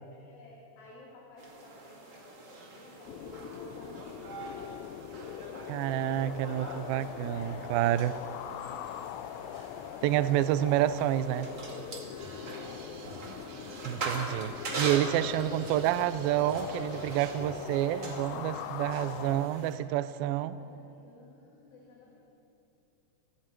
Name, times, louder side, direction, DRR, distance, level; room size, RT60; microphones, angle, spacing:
voice 1, 0.1-4.3 6.2-6.7 7.3-10.8 11.7-13.7 15.0-15.4 15.7-16.0 18.3-19.8 20.4-22.2, left 2 dB, 55° left, 4.5 m, -53 dB
sound 1, 1.4-19.7, right 3 dB, 35° right, 2.4 m, -43 dB
sound 2, 3.1-19.5, left 11 dB, 85° left, 2.9 m, -42 dB
voice 2, 5.7-8.1 10.0-11.5 13.9-20.6, right 13 dB, 85° right, 2.1 m, -29 dB
sound 3, 12.2-17.7, right 3 dB, 65° right, 4.0 m, -50 dB
27.5 x 20.5 x 4.6 m
omnidirectional pair, 5.1 m